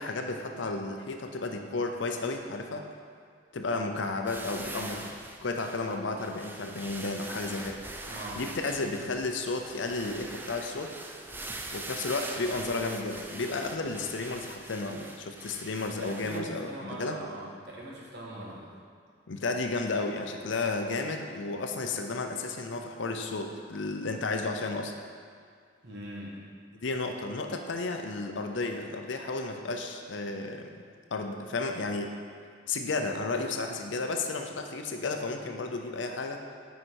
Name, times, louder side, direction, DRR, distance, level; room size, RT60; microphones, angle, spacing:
voice 1, 0.0-2.8 3.5-5.1 5.4-7.8 8.3-10.9 11.7-17.2 19.3-24.9 26.7-30.8 31.1-32.2 32.7-36.4, left 3 dB, 75° left, 4 dB, 0.6 m, -33 dB
sound 1, 4.3-16.4, right 2 dB, 10° right, 0.3 m, -42 dB
voice 2, 8.1-8.5 16.0-18.7 25.8-26.5 32.6-32.7, right 1 dB, 60° right, -4 dB, 1.5 m, -41 dB
6.2 x 5.6 x 4.6 m, 2.1 s
head